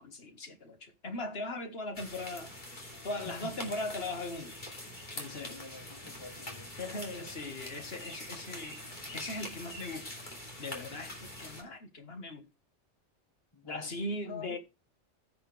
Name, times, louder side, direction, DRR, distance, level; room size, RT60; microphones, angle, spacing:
voice 1, 0.0-2.5 3.0-4.6 5.2-5.6 6.8-8.8 9.1-10.1 10.6-12.5 13.7-14.6, left 2 dB, 60° left, 1.7 m, -39 dB
sound 1, 1.9-11.6, left 1 dB, 40° left, 2.9 m, -44 dB
voice 2, 3.2-3.6 5.3-6.7 13.5-14.6, left 5 dB, 25° left, 1.1 m, -48 dB
15.5 x 5.8 x 3.3 m
omnidirectional pair, 1.2 m